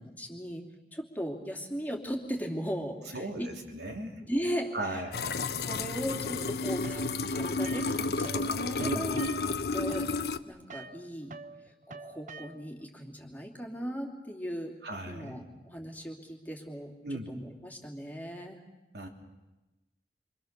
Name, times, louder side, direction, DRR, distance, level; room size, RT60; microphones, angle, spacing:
voice 1, 0.2-3.5 4.2-5.0 5.6-10.1 10.5-11.4 11.6-14.7 15.1-18.6, equal, 10° left, 1 dB, 3.0 m, -37 dB
voice 2, 3.1-4.2 4.7-5.3 8.8-9.1 14.8-15.5 17.0-17.3 18.9-19.1, right 1 dB, 70° right, 1 dB, 3.5 m, -37 dB
sound 1, 5.1-10.4, left 3 dB, 65° left, 0.9 m, -31 dB
sound 2, 6.8-8.5 8.8-12.8, right 3 dB, 45° right, 1.0 m, -46 dB
27.5 x 26.0 x 6.8 m, 1.1 s
head